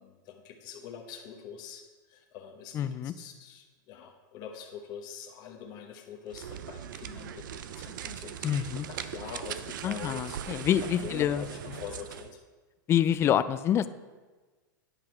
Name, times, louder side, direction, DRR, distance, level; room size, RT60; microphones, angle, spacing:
voice 1, 0.0-12.4, left 7 dB, 40° left, 2 dB, 1.0 m, -44 dB
voice 2, 2.7-3.1 8.4-8.9 9.8-11.4 12.9-13.9, left 10 dB, 25° left, 14 dB, 0.4 m, -27 dB
sound 1, 6.3-12.3, right 9 dB, 80° right, 0.5 m, -40 dB
9.9 x 5.9 x 4.4 m, 1.3 s
supercardioid pair, 135°, 11 cm